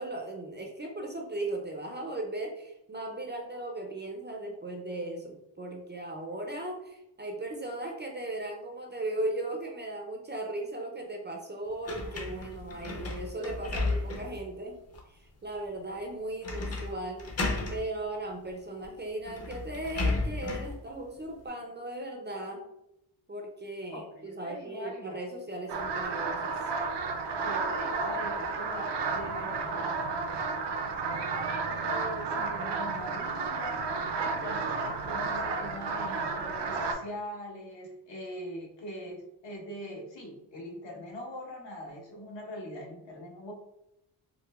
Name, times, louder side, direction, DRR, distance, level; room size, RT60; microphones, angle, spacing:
voice 1, 0.0-17.2 17.7-22.6 23.3-26.7, right 2 dB, 25° right, 1 dB, 0.4 m, -37 dB
sound 1, 11.9-14.4 14.9-15.0 16.4-16.9 17.2-17.8 18.8-18.9 19.3-20.8, left 3 dB, 35° left, 0.7 m, -33 dB
voice 2, 23.9-25.2 27.4-30.0 31.0-43.5, equal, 70° left, -2 dB, 1.2 m, -42 dB
sound 2, 25.7-36.9, right 4 dB, 65° right, 0.6 m, -32 dB
4.7 x 2.1 x 2.3 m, 0.86 s
cardioid pair, 105°, 46 cm